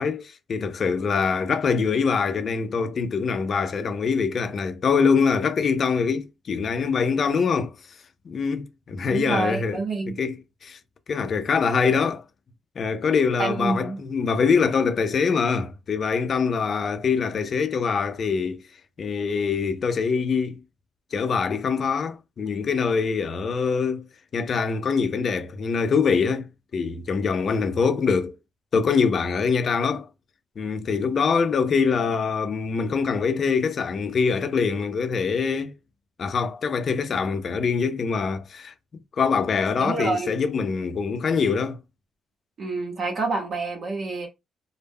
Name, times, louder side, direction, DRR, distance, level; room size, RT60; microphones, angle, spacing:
voice 1, 0.0-7.7 8.3-9.8 10.2-10.8 11.1-12.2 12.8-18.6 19.0-20.6 21.1-24.1 24.3-28.4 28.7-30.1 30.6-35.8 36.2-38.7 39.2-41.8, left 5 dB, 50° left, 0.4 m, -24 dB
voice 2, 9.1-10.2 13.4-14.0 39.8-40.3 42.6-44.3, right 3 dB, 50° right, 0.8 m, -27 dB
2.1 x 2.0 x 3.4 m
cardioid pair, 90°, 0 cm